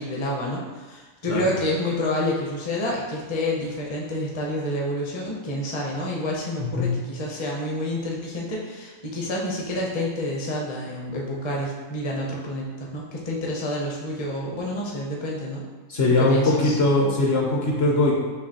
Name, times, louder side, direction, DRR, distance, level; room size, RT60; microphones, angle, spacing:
voice 1, 0.0-12.7 12.9-15.6 16.2-16.8, left 1 dB, 30° left, -3 dB, 0.5 m, -28 dB
voice 2, 6.6-7.0 15.9-18.1, left 2 dB, 55° left, -2 dB, 0.9 m, -21 dB
6.5 x 2.7 x 2.9 m, 1.3 s
omnidirectional pair, 1.5 m